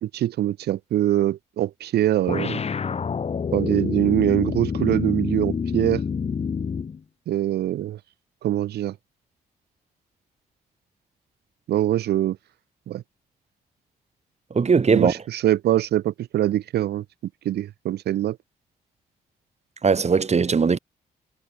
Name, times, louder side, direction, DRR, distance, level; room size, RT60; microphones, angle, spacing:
voice 1, 0.0-2.6 3.5-6.0 7.3-8.0 8.4-9.0 11.7-12.4 12.9-13.0 14.9-17.0 17.4-18.4, right 13 dB, 80° right, 3.0 m, -23 dB
sound 1, 2.3-7.0, left 6 dB, 40° left, 0.8 m, -27 dB
voice 2, 14.5-15.1 19.8-20.8, right 5 dB, 40° right, 2.5 m, -19 dB
supercardioid pair, 60°, 17 cm